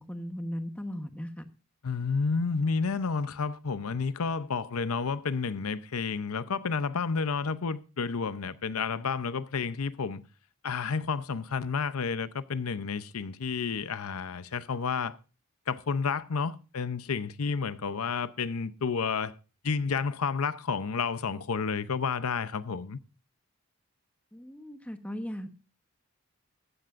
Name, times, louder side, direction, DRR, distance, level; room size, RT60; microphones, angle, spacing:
voice 1, 0.0-1.4 24.3-25.5, equal, 5° left, 1.1 m, -37 dB
voice 2, 1.8-10.2 10.6-15.1 15.7-19.4 19.6-23.0, left 5 dB, 80° left, 0.6 m, -31 dB
14.5 x 13.5 x 2.5 m
head